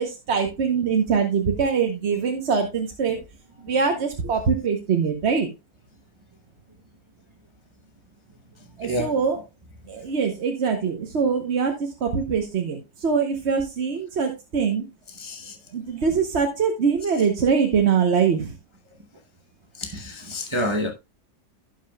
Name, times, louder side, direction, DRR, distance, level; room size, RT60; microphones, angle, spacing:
voice 1, 0.0-3.2 3.6-5.5 8.8-9.4 9.9-14.9 15.7-18.5, right 6 dB, 50° right, 1.2 m, -23 dB
voice 2, 8.8-9.1 15.2-15.6 19.7-20.9, left 1 dB, 25° right, 0.7 m, -28 dB
16.5 x 5.7 x 2.2 m
omnidirectional pair, 1.5 m